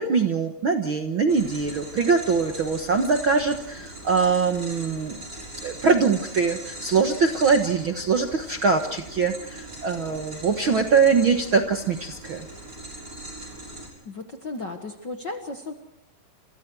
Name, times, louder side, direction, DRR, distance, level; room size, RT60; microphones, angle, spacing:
voice 1, 0.0-5.2 5.6-12.5, right 5 dB, 55° right, 5 dB, 1.4 m, -23 dB
sound 1, 1.3-13.9, right 2 dB, 25° right, 7.1 m, -40 dB
voice 2, 14.0-15.7, left 2 dB, 45° left, 5 dB, 1.6 m, -35 dB
28.0 x 28.0 x 4.7 m, 0.76 s
omnidirectional pair, 4.0 m